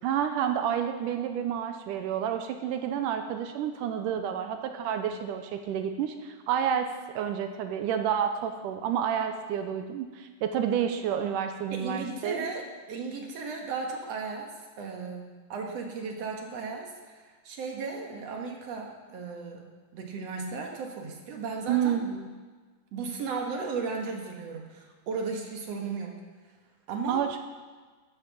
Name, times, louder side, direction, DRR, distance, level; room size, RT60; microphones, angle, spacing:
voice 1, 0.0-6.9 7.1-12.5 21.7-22.3 27.1-27.4, right 9 dB, 80° right, 7 dB, 2.1 m, -29 dB
voice 2, 11.7-19.6 19.9-22.0 22.9-26.1 26.9-27.2, right 4 dB, 55° right, 1 dB, 2.1 m, -35 dB
11.0 x 9.0 x 7.0 m, 1.4 s
omnidirectional pair, 4.0 m